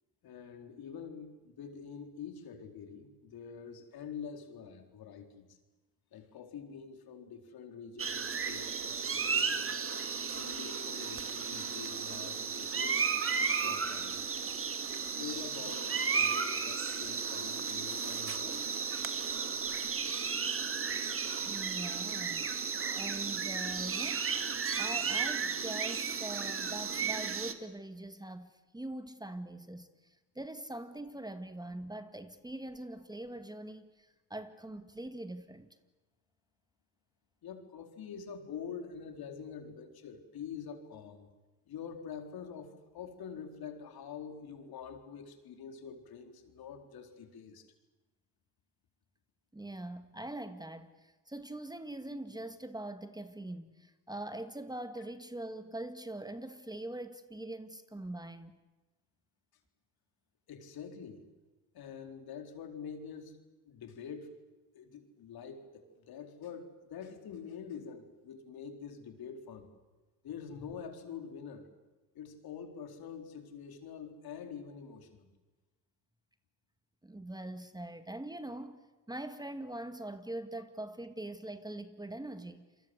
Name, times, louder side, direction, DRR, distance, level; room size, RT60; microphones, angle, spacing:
voice 1, 0.2-5.6 6.1-9.8 10.4-13.1 13.6-14.2 14.9-18.7 37.4-41.3 41.7-47.7 60.5-61.3 61.7-63.4 63.7-64.4 64.7-69.7 70.2-71.7 72.1-75.3, left 7 dB, 60° left, 4.2 m, -46 dB
sound 1, 8.0-27.5, right 5 dB, 30° right, 2.3 m, -34 dB
voice 2, 21.4-22.5 22.9-24.3 24.8-35.7 49.5-58.6 77.0-78.8 79.1-82.6, right 1 dB, 10° right, 1.8 m, -43 dB
28.0 x 23.0 x 8.0 m
supercardioid pair, 80°, 41 cm